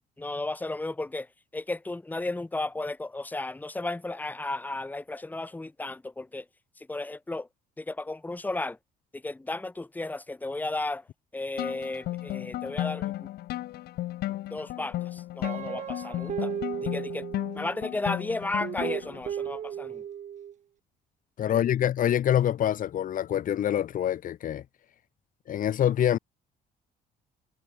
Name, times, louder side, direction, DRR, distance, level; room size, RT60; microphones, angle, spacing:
voice 1, 0.2-6.5 6.8-7.5 7.8-8.8 9.1-11.1 11.3-13.3 14.3-16.5 16.8-17.2 17.5-20.0 21.5-21.6, left 2 dB, 10° left, 1.5 m, -34 dB
sound 1, 11.6-19.2, left 15 dB, 70° left, 1.1 m, -34 dB
Guitar, 15.4-17.9 18.6-20.5, right 9 dB, 45° right, 1.4 m, -35 dB
voice 2, 21.4-24.6 25.5-26.2, left 10 dB, 55° left, 1.3 m, -25 dB
cardioid pair, 110°, 17 cm